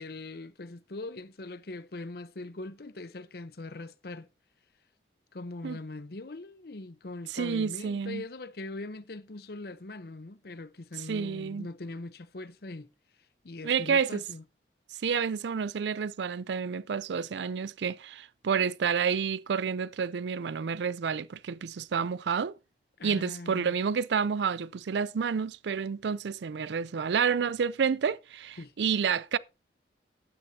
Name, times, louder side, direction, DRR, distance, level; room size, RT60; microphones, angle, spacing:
voice 1, 0.0-4.3 5.3-12.9 13.4-14.4 23.0-23.8 28.6-28.7, left 2 dB, 60° left, 0.8 m, -41 dB
voice 2, 7.3-8.2 11.1-11.7 13.6-14.2 15.0-22.6 23.0-29.4, right 6 dB, 80° right, 0.4 m, -29 dB
13.0 x 9.8 x 2.8 m
head